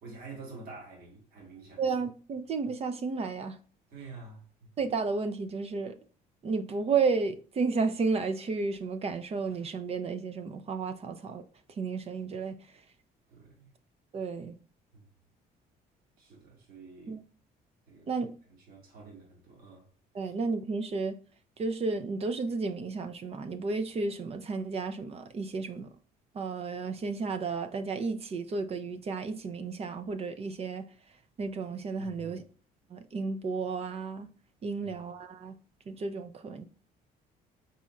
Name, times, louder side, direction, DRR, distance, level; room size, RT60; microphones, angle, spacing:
voice 1, 0.0-1.8 3.9-4.7 13.3-13.7 14.9-15.1 16.2-17.2 17.9-18.1 18.7-19.9 20.2-20.3 32.0-32.4 34.8-35.0, right 3 dB, 60° right, 2.0 m, -48 dB
voice 2, 1.8-3.6 4.8-6.0 6.4-12.8 14.1-14.6 17.1-17.2 18.1-18.3 20.1-21.1 21.6-25.9 26.3-30.8 31.4-32.4 32.9-34.3 34.6-35.5 35.9-36.6, right 4 dB, 35° right, 0.5 m, -32 dB
4.1 x 4.1 x 2.4 m
cardioid pair, 110°, 17 cm